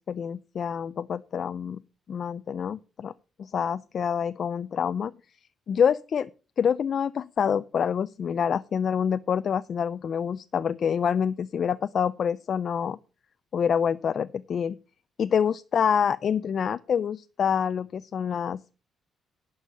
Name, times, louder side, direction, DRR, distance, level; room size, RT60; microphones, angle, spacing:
voice 1, 0.0-1.8 2.1-3.1 3.4-5.1 5.7-6.3 6.6-13.0 13.5-14.8 15.2-18.7, left 7 dB, 55° left, 13 dB, 0.4 m, -26 dB
11.0 x 5.5 x 6.6 m, 0.35 s
cardioid pair, 90°, 0 cm